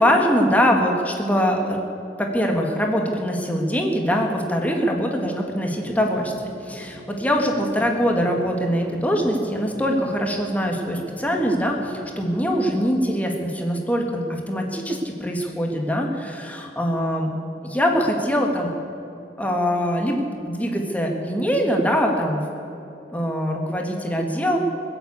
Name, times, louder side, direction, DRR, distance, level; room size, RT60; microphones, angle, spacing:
voice 1, 0.0-1.8 2.2-17.3 17.6-18.7 19.4-22.4 23.1-24.6, equal, 10° left, 1 dB, 1.8 m, -23 dB
sound 1, 5.8-12.7, equal, 60° right, 2.9 m, -44 dB
21.5 x 8.0 x 8.3 m, 2.9 s
head